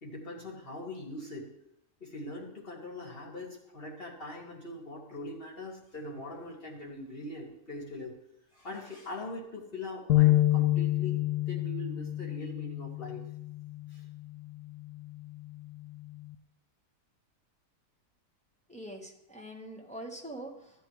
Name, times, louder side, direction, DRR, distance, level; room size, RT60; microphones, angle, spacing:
voice 1, 0.0-1.5 2.0-8.1 8.5-13.2 13.9-14.1, left 2 dB, 35° left, -3 dB, 2.4 m, -42 dB
sound 1, 10.1-16.3, left 16 dB, 80° left, 1.3 m, -29 dB
voice 2, 18.7-20.9, right 1 dB, 5° left, 0 dB, 1.0 m, -44 dB
15.0 x 8.9 x 3.2 m, 0.80 s
omnidirectional pair, 1.7 m